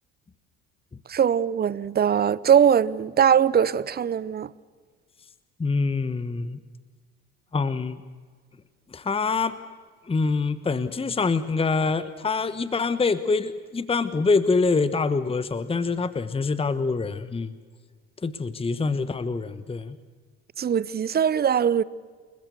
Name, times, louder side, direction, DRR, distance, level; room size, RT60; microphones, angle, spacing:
voice 1, 1.1-4.5 20.6-21.8, right 8 dB, 30° right, 0.8 m, -21 dB
voice 2, 5.6-6.6 7.5-8.0 8.9-9.6 10.1-17.5 18.2-20.0, left 4 dB, 15° left, 1.1 m, -25 dB
29.5 x 20.5 x 6.9 m
hypercardioid pair, 65°, 34 cm